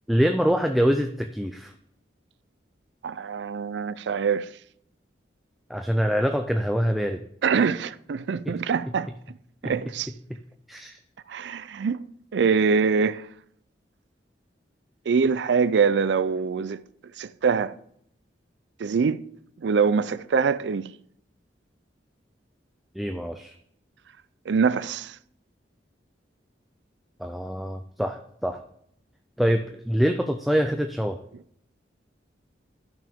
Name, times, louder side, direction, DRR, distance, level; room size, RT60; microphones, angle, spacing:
voice 1, 0.1-1.7 5.7-7.2 8.5-8.6 8.9-9.0 9.6-9.7 10.3-10.4 10.7-11.0 23.0-23.6 27.2-28.6 29.4-31.2, equal, ahead, 0.4 m, -25 dB
voice 2, 3.0-4.5 7.4-9.1 9.6-10.1 11.3-12.1 12.3-13.2 15.1-16.8 17.2-17.7 18.8-19.2 19.6-20.9 24.5-25.2, right 5 dB, 75° right, 0.4 m, -24 dB
13.0 x 6.0 x 3.5 m
head